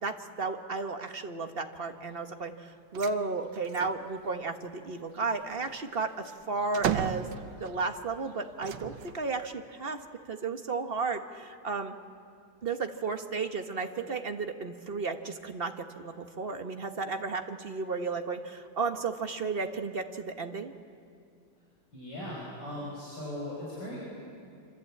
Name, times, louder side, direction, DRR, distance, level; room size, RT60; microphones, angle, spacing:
voice 1, 0.0-7.3 7.6-10.0 10.3-11.9 12.6-20.7, right 4 dB, 35° right, 6 dB, 1.2 m, -33 dB
sound 1, 2.9-3.2 3.6-4.0 5.4-7.9 8.6-9.3, right 9 dB, 80° right, 1.7 m, -34 dB
voice 2, 21.9-24.0, left 1 dB, 65° left, -5 dB, 6.4 m, -38 dB
26.5 x 26.0 x 8.6 m, 2.4 s
omnidirectional pair, 2.1 m